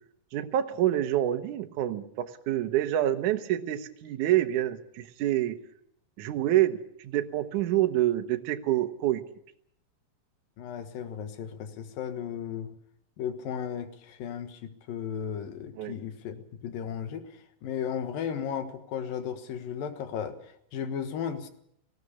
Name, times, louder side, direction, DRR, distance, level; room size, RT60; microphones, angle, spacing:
voice 1, 0.3-5.6 6.2-6.8 7.0-9.2 15.8-16.0, right 13 dB, 70° right, 7 dB, 2.4 m, -27 dB
voice 2, 10.6-12.8 13.2-21.5, left 8 dB, 90° left, 9 dB, 3.3 m, -35 dB
19.0 x 17.0 x 8.5 m, 0.72 s
omnidirectional pair, 3.9 m